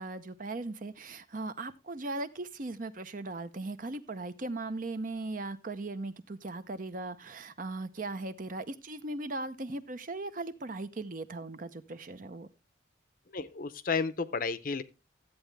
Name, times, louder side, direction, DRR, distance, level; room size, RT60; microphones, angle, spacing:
voice 1, 0.0-12.5, right 2 dB, 45° right, 0.7 m, -38 dB
voice 2, 13.3-14.8, left 4 dB, 50° left, 0.6 m, -32 dB
13.0 x 8.2 x 3.3 m
head